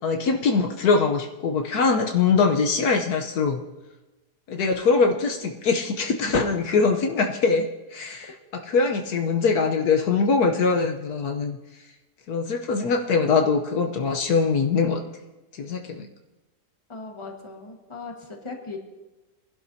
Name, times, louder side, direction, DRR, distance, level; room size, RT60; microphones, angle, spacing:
voice 1, 0.0-3.6 4.5-11.6 12.3-15.0 15.6-16.1, left 4 dB, 70° left, 4 dB, 1.3 m, -22 dB
voice 2, 16.9-18.8, left 4 dB, 20° left, 2 dB, 1.4 m, -38 dB
23.5 x 11.5 x 2.7 m, 1.1 s
omnidirectional pair, 1.8 m